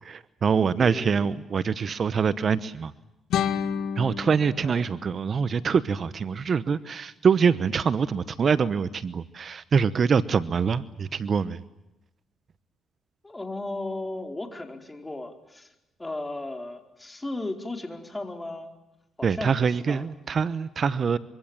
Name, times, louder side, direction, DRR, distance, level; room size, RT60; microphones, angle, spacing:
voice 1, 0.0-2.9 4.0-11.6 19.2-21.2, right 6 dB, 45° right, 15 dB, 1.0 m, -24 dB
voice 2, 0.8-1.1 4.6-4.9 13.2-15.7 16.0-18.8 19.2-20.1, left 2 dB, 15° left, 5 dB, 4.5 m, -35 dB
sound 1, 3.3-6.3, left 8 dB, 80° left, 2.0 m, -32 dB
25.0 x 24.5 x 8.9 m, 0.93 s
cardioid pair, 90°, 0 cm